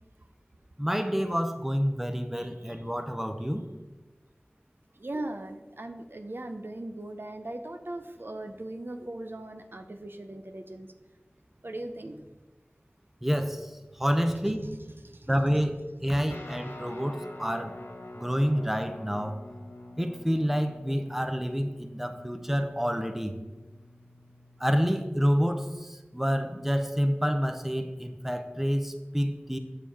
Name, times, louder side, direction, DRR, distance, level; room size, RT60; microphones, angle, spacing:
voice 1, 0.8-3.6 13.2-13.7 14.0-14.6 15.3-15.8 16.0-17.8 18.2-19.3 20.0-23.4 24.6-29.6, equal, 5° right, 7 dB, 0.7 m, -28 dB
voice 2, 2.4-2.8 5.0-10.9 11.6-12.1 15.0-15.5, right 1 dB, 60° right, 6 dB, 0.6 m, -39 dB
Guitar, 16.3-25.7, left 1 dB, 65° left, 1.2 m, -47 dB
7.2 x 6.6 x 4.6 m, 1.2 s
wide cardioid pair, 45°, 4 cm